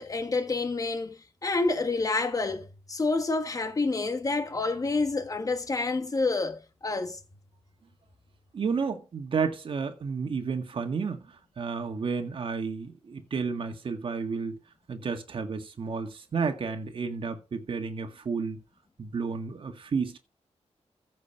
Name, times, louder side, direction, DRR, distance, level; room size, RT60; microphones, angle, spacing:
voice 1, 0.0-7.2, left 3 dB, 30° left, 1.3 m, -28 dB
voice 2, 8.5-14.6 14.9-18.6 19.0-20.2, right 5 dB, 50° right, 1.8 m, -31 dB
15.0 x 6.1 x 4.8 m
wide cardioid pair, 165°, 12 cm